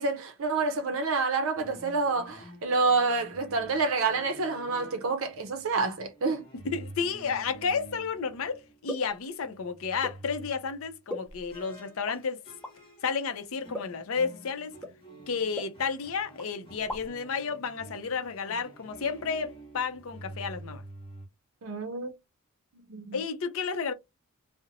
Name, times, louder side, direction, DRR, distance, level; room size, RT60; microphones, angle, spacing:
voice 1, 0.0-6.4 21.6-22.1 22.9-23.2, right 4 dB, 65° right, 0.5 m, -28 dB
sound 1, 1.5-9.1 9.4-10.9 11.5-21.3, right 1 dB, 25° left, 0.9 m, -49 dB
voice 2, 6.6-12.4 13.0-14.7 15.3-20.8 23.1-23.9, left 5 dB, 65° left, 0.5 m, -32 dB
sound 2, 8.9-9.2 10.0-10.2 11.1-11.6 12.0-12.2 12.6-12.8 13.7-14.0 14.8-15.0 15.6-16.1 16.4-16.5 16.8-17.3, left 1 dB, 5° left, 0.4 m, -39 dB
2.6 x 2.0 x 2.7 m
head